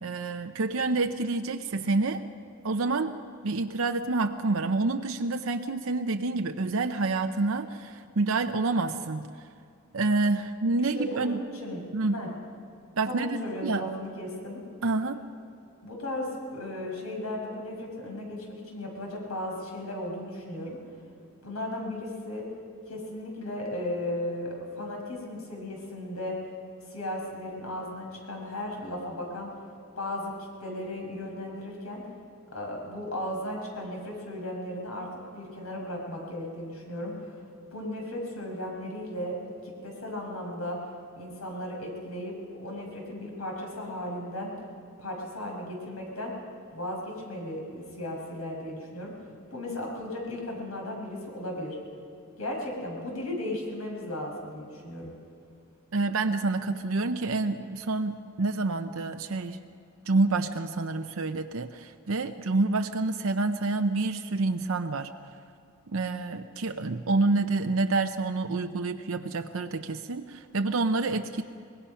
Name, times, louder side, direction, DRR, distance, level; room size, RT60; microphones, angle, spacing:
voice 1, 0.0-2.2 2.6-3.2 3.4-9.3 9.9-11.4 11.9-12.2 13.0-13.8 14.8-15.2 55.9-59.6 60.1-65.1 65.9-71.4, right 3 dB, 65° right, 6 dB, 0.7 m, -28 dB
voice 2, 10.9-12.3 13.1-14.6 15.8-20.8 21.4-22.4 22.9-26.4 26.9-29.5 30.0-32.0 32.5-35.1 35.3-37.2 37.7-39.4 39.6-40.8 41.2-44.5 45.0-46.3 46.7-49.1 49.5-51.8 52.4-55.1, left 1 dB, 80° left, 0 dB, 5.8 m, -36 dB
24.0 x 20.0 x 5.7 m, 2.4 s
head